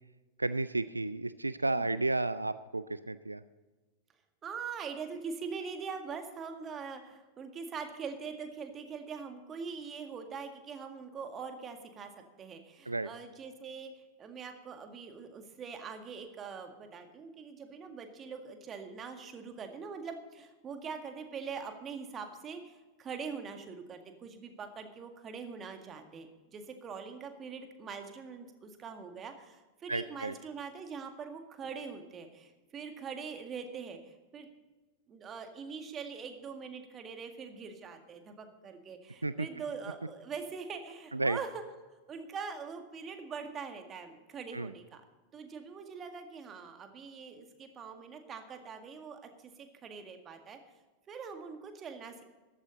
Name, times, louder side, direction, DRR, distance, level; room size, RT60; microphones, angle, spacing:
voice 1, 0.4-3.4 12.9-13.1 29.9-30.3 39.2-39.5 41.1-41.4 44.5-44.7, right 2 dB, 80° right, 15 dB, 0.4 m, -32 dB
voice 2, 4.4-12.1 12.4-34.5 35.1-41.6 42.1-45.0 45.3-50.6 51.1-52.2, right 5 dB, 25° right, 6 dB, 1.8 m, -43 dB
14.5 x 13.0 x 4.0 m, 1.2 s
figure-of-eight pair, 90°, 0 cm